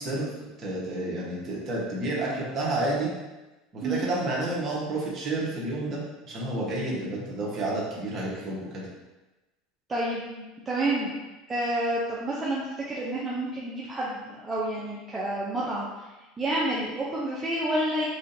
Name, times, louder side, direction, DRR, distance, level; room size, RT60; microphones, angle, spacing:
voice 1, 0.0-3.1 3.7-8.8, right 2 dB, 40° right, -5 dB, 1.3 m, -30 dB
voice 2, 9.9-11.2 11.5-15.9 16.4-18.1, right 1 dB, 20° right, -6 dB, 0.7 m, -29 dB
4.8 x 2.5 x 2.8 m, 1.1 s
supercardioid pair, 115°, 0 cm